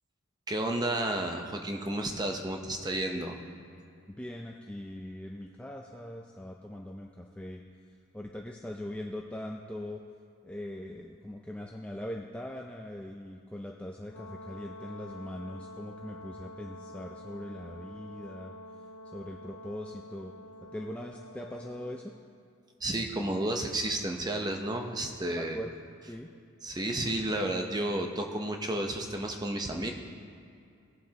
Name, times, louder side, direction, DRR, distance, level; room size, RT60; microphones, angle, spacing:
voice 1, 0.5-3.4 22.8-25.6 26.6-29.9, right 1 dB, 20° right, 3 dB, 0.7 m, -32 dB
voice 2, 4.1-7.6 8.1-10.0 10.4-18.5 19.1-20.3 20.7-22.1 25.4-25.7 26.1-26.3, left 1 dB, 5° left, 0 dB, 0.4 m, -41 dB
Brass instrument, 14.1-22.1, left 1 dB, 75° left, 0.9 m, -47 dB
18.0 x 7.4 x 2.9 m, 2.5 s
head